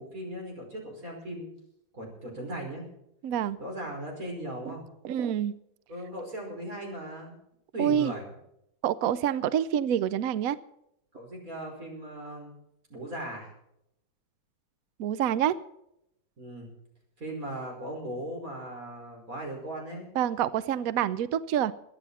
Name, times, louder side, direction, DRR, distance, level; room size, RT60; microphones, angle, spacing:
voice 1, 0.0-1.5 1.9-2.9 3.6-4.8 5.9-7.4 7.7-8.3 11.1-12.5 12.9-13.5 16.4-16.7 17.2-20.1, right 1 dB, 40° right, 5.6 m, -38 dB
voice 2, 3.2-3.6 4.7-4.8 5.0-5.5 7.8-8.1 8.8-10.6 15.0-15.6 20.2-21.7, right 10 dB, 75° right, 0.8 m, -27 dB
23.0 x 9.9 x 4.2 m
omnidirectional pair, 2.2 m